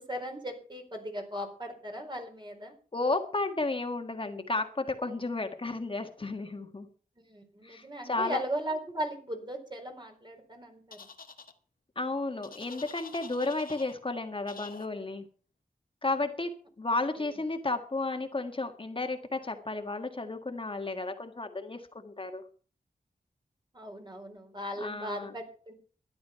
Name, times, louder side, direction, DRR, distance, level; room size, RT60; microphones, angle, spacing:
voice 1, 0.0-2.7 7.3-11.0 17.2-17.4 23.7-25.7, equal, 30° right, 4 dB, 4.2 m, -37 dB
voice 2, 2.9-6.9 7.6-8.4 11.9-15.2 16.0-16.5 16.8-22.4 24.8-25.3, left 2 dB, 35° left, 5 dB, 1.6 m, -33 dB
sound 1, 10.9-11.5 12.4-13.9 14.5-14.9, left 5 dB, 75° left, 1.5 m, -47 dB
13.0 x 11.0 x 5.7 m, 0.41 s
wide cardioid pair, 80°, 15 cm